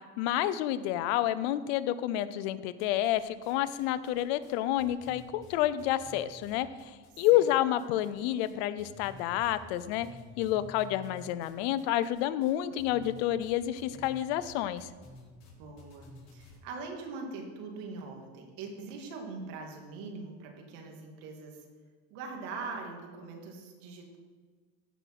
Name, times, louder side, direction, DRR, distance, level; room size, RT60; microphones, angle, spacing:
voice 1, 0.2-6.7 7.2-10.1 10.4-14.9, left 13 dB, 90° left, 15 dB, 0.7 m, -29 dB
sound 1, 2.8-3.5 3.8-7.5 7.8-8.5 8.8-16.6, left 2 dB, 60° left, 4.1 m, -51 dB
voice 2, 7.1-7.4 15.6-21.7 22.1-24.2, right 4 dB, 80° right, 2 dB, 2.5 m, -42 dB
15.5 x 5.3 x 6.0 m, 1.5 s
supercardioid pair, 115°, 31 cm